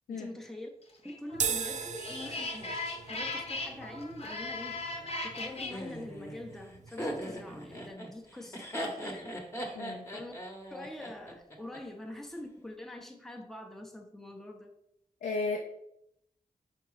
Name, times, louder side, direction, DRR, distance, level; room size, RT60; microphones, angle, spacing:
voice 1, 0.1-0.7 1.0-4.8 5.2-9.4 10.1-10.3 10.7-14.7, left 1 dB, ahead, 3 dB, 0.7 m, -44 dB
sound 1, 1.1-5.7, left 2 dB, 45° left, 0.9 m, -38 dB
sound 2, 1.3-7.9, right 6 dB, 55° right, 0.4 m, -40 dB
Laughter, 5.7-11.8, equal, 15° left, 1.0 m, -39 dB
voice 2, 9.7-10.1 15.2-15.6, left 3 dB, 85° left, 0 dB, 0.6 m, -34 dB
4.4 x 3.8 x 3.1 m, 0.77 s
cardioid pair, 55°, 14 cm